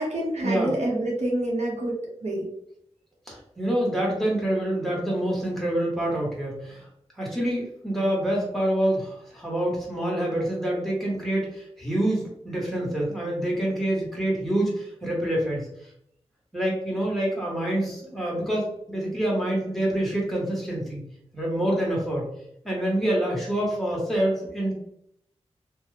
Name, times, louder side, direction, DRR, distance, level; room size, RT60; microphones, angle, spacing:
voice 1, 0.0-1.9 2.2-2.5, right 1 dB, 80° right, -2 dB, 0.9 m, -27 dB
voice 2, 3.3-6.9 7.2-15.9 16.5-21.0 21.3-22.3 22.6-24.7, right 1 dB, ahead, -4 dB, 1.2 m, -26 dB
2.8 x 2.2 x 3.3 m, 0.74 s
wide cardioid pair, 85°, 11 cm